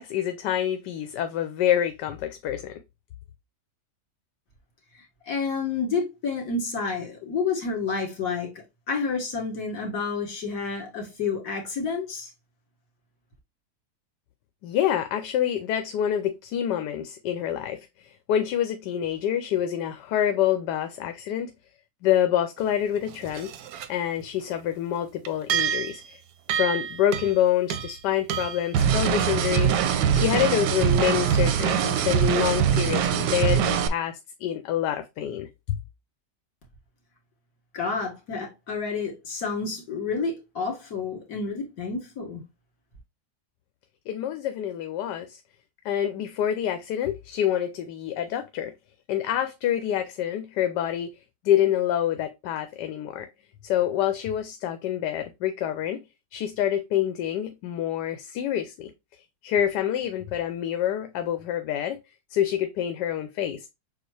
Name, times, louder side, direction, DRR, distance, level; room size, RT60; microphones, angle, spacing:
voice 1, 0.0-2.7 14.6-21.5 22.0-23.5 23.9-26.2 26.5-35.8 44.1-45.4 45.8-48.7 49.1-51.1 51.4-53.3 53.6-56.0 56.3-58.9 59.4-62.0 62.3-63.7, left 10 dB, 85° left, 1.2 m, -27 dB
voice 2, 5.3-8.5 8.9-12.3 37.7-42.4, left 4 dB, 65° left, 2.3 m, -29 dB
sound 1, 22.6-22.7 23.0-23.9 24.2-24.3 25.3-26.1 26.5-27.4 27.7-28.0 28.3-28.7, right 9 dB, 70° right, 0.9 m, -30 dB
sound 2, 28.7-33.9, right 8 dB, 90° right, 1.2 m, -22 dB
6.8 x 2.3 x 3.2 m
omnidirectional pair, 1.8 m